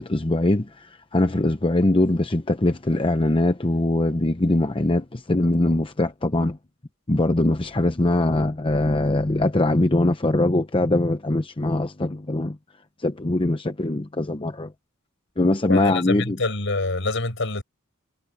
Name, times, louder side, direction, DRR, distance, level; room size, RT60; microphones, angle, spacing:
voice 1, 0.0-6.6 7.1-12.6 13.0-14.7 15.4-16.4, left 2 dB, 25° left, 0.8 m, -22 dB
voice 2, 15.7-17.6, left 2 dB, 65° left, 5.3 m, -25 dB
head